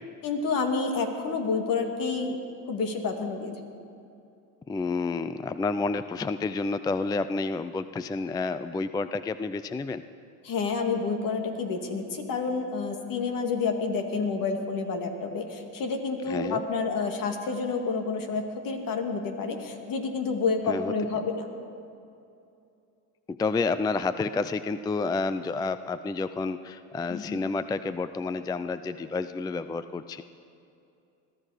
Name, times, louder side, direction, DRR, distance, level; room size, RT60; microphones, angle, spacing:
voice 1, 0.2-2.4 2.7-3.5 10.4-21.5 27.1-27.4, left 4 dB, 60° left, 4 dB, 2.2 m, -29 dB
voice 2, 4.7-10.0 16.2-16.6 20.7-20.9 23.3-30.2, left 3 dB, 10° left, 12 dB, 0.4 m, -30 dB
21.5 x 13.0 x 4.9 m, 2.6 s
supercardioid pair, 95°, 37 cm